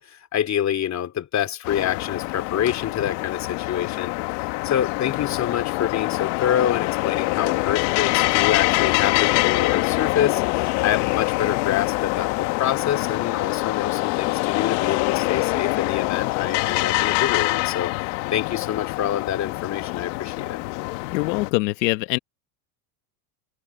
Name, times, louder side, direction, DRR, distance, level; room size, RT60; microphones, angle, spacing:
voice 1, 0.0-4.1 4.6-17.9 18.3-20.6, left 10 dB, 35° left, 3.1 m, -26 dB
sound 1, 1.6-21.5, left 24 dB, 75° left, 1.6 m, -24 dB
voice 2, 21.1-22.2, left 21 dB, 90° left, 1.2 m, -23 dB
supercardioid pair, 135°, 50 cm